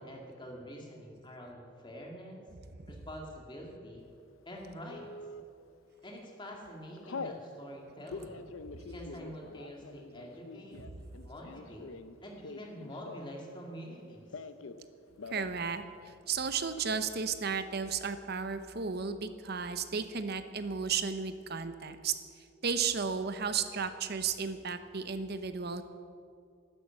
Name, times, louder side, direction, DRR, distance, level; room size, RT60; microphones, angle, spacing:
voice 1, 0.0-2.4 2.9-4.0 4.5-5.0 6.0-8.5 8.9-10.8 11.2-11.9 12.2-14.3, equal, 25° left, 0 dB, 2.4 m, -46 dB
Telephone, 4.9-5.4 6.0-6.2 6.5-7.4 8.0-13.5 13.7-14.8 15.1-15.6 15.9-16.0 16.2-16.8, left 4 dB, 80° left, 0.6 m, -45 dB
voice 2, 15.3-22.1 22.6-25.8, right 6 dB, 50° right, 10 dB, 0.8 m, -34 dB
12.0 x 10.0 x 7.7 m, 2.3 s
head